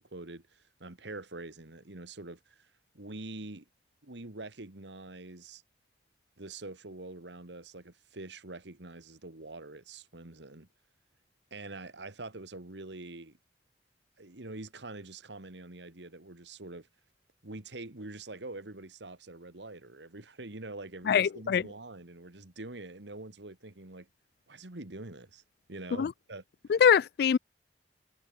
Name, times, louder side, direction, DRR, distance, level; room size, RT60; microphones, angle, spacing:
voice 1, 0.0-3.7 4.0-5.6 6.4-10.7 11.5-13.4 14.2-16.9 17.4-24.1 24.5-25.4 25.7-26.4, right 2 dB, 80° right, 2.1 m, -45 dB
voice 2, 21.1-21.6 26.0-26.1 26.7-27.4, left 7 dB, 60° left, 0.3 m, -23 dB
head